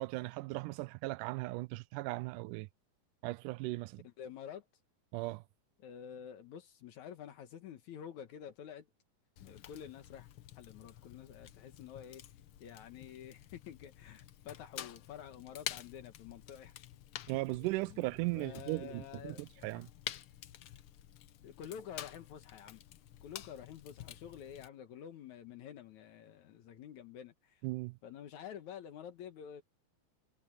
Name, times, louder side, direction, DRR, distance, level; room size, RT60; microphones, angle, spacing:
voice 1, 0.0-2.7 3.2-4.1 5.1-5.4 17.3-19.9 27.6-28.0, right 21 dB, 80° right, 2.1 m, -37 dB
voice 2, 4.0-4.7 5.8-8.9 9.5-10.3 10.6-12.2 12.6-16.8 17.6-18.1 18.3-19.4 21.4-22.8 23.2-27.6 28.0-29.6, left 9 dB, 70° left, 2.5 m, -49 dB
Fire, 9.4-24.7, left 11 dB, 90° left, 1.1 m, -49 dB
omnidirectional pair, 3.7 m